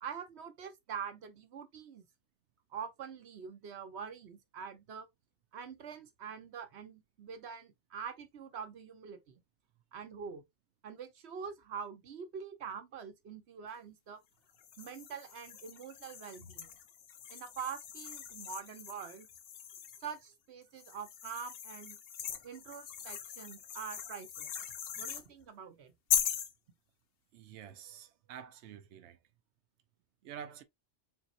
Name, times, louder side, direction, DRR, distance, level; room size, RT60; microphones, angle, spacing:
voice 1, 0.0-2.0 2.7-5.1 5.5-9.4 9.9-10.4 10.8-14.2 14.8-16.7 17.3-19.3 20.0-22.0 22.4-24.5 25.0-25.9, right 7 dB, 70° right, 1.1 m, -45 dB
sound 1, 14.6-20.2 20.8-25.3 26.1-26.5, left 9 dB, 65° left, 0.8 m, -40 dB
voice 2, 27.3-29.2 30.2-30.6, right 8 dB, 90° right, 0.9 m, -48 dB
4.2 x 3.9 x 2.4 m
omnidirectional pair, 1.2 m